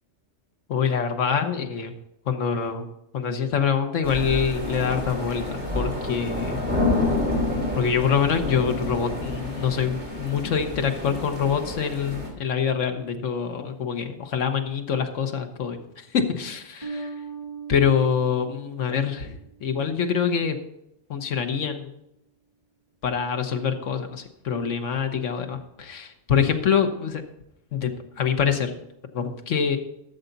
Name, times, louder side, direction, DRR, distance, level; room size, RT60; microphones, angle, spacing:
voice 1, 0.7-1.9 2.3-2.9 3.1-6.6 7.7-17.0 17.7-20.6 21.1-21.9 23.0-27.2 27.7-28.7 29.1-29.8, left 7 dB, 75° left, 6 dB, 1.3 m, -25 dB
sound 1, 4.0-12.3, left 2 dB, 10° right, 3.0 m, -28 dB
Bass guitar, 16.8-19.8, right 4 dB, 25° right, 1.1 m, -39 dB
13.0 x 6.9 x 4.0 m, 0.83 s
omnidirectional pair, 1.3 m